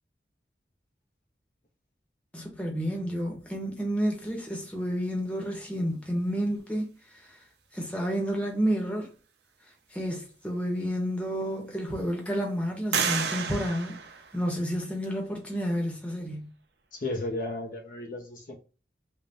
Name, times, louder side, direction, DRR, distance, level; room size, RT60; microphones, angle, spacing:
voice 1, 2.3-6.9 7.1-7.4 7.7-9.1 9.9-14.0 14.3-16.5, equal, 5° left, 0.9 m, -30 dB
sound 1, 10.7-10.8 11.3-12.0 12.9-14.9, right 6 dB, 75° right, 0.6 m, -32 dB
voice 2, 16.9-18.6, left 2 dB, 50° left, 0.6 m, -34 dB
3.5 x 2.1 x 4.0 m
head